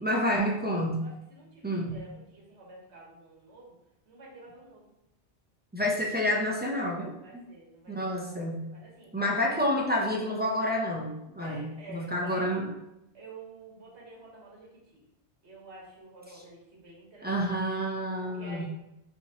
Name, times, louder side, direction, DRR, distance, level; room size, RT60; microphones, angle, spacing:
voice 1, 0.0-1.1 1.6-2.1 5.7-7.4 7.9-8.8 9.1-12.7 17.2-18.7, equal, 15° right, -2 dB, 0.3 m, -29 dB
voice 2, 1.0-3.8 4.1-4.9 7.2-9.1 9.5-9.6 11.4-12.6 13.1-15.0 15.4-17.6 18.2-18.7, right 2 dB, 75° right, -4 dB, 1.5 m, -49 dB
5.7 x 3.0 x 2.9 m, 0.87 s
omnidirectional pair, 1.1 m